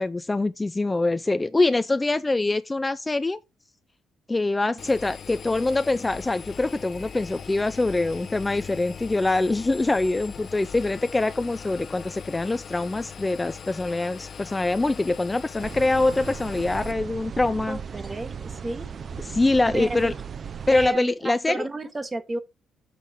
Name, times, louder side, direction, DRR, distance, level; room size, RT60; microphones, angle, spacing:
voice 1, 0.0-3.4 4.3-17.8 19.2-20.1 20.7-21.7, left 2 dB, 20° left, 0.3 m, -24 dB
Engine, 4.8-16.9, left 6 dB, 50° left, 0.8 m, -40 dB
sound 1, 15.6-20.9, right 6 dB, 45° right, 0.5 m, -36 dB
voice 2, 17.7-18.9 19.7-20.1 20.7-22.4, right 2 dB, 25° right, 1.0 m, -32 dB
7.3 x 3.6 x 4.8 m
cardioid pair, 90°, 0 cm